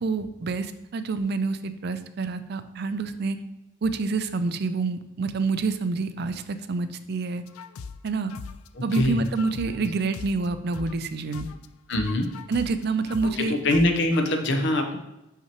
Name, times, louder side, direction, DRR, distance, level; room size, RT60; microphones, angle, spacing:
voice 1, 0.0-3.4 3.8-7.4 8.0-8.3 8.8-11.5 12.5-13.5, right 4 dB, 50° right, 10 dB, 0.4 m, -27 dB
sound 1, 7.5-11.1 11.3-14.3, left 5 dB, 85° left, 0.4 m, -40 dB
voice 2, 8.7-9.2 9.6-9.7 11.9-12.3 13.2-15.0, left 1 dB, 55° left, 6 dB, 0.7 m, -24 dB
5.8 x 5.7 x 3.0 m, 0.93 s
head